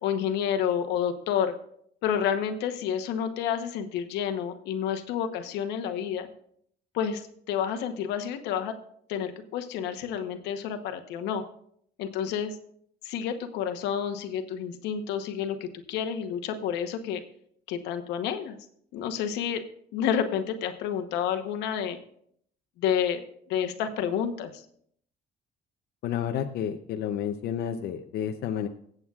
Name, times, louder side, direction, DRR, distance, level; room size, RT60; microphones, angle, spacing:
voice 1, 0.0-1.5 2.0-6.3 6.9-8.7 9.1-11.4 12.0-12.6 13.0-17.2 17.7-18.6 18.9-19.6 19.9-22.0 22.8-23.2 23.5-24.6, left 8 dB, 90° left, 7 dB, 1.0 m, -29 dB
voice 2, 26.0-28.7, left 9 dB, 70° left, 5 dB, 0.7 m, -30 dB
22.0 x 7.9 x 2.4 m, 0.66 s
cardioid pair, 110°, 17 cm